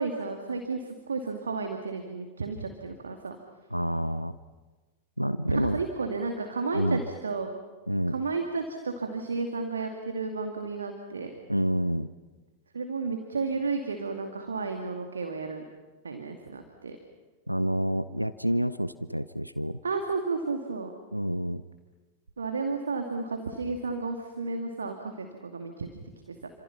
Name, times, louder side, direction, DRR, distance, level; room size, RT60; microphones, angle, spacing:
voice 1, 0.0-3.4 5.5-7.5 8.1-11.3 12.7-15.6 16.0-17.0 19.8-20.9 22.4-25.9 26.3-26.5, right 4 dB, 75° right, 4 dB, 2.4 m, -32 dB
voice 2, 3.7-4.4 5.2-5.8 6.7-7.0 7.9-8.1 11.5-12.1 17.5-19.8 21.1-21.6, equal, 90° right, 14 dB, 0.7 m, -28 dB
28.5 x 26.5 x 5.9 m, 1.2 s
figure-of-eight pair, 90°, 0 cm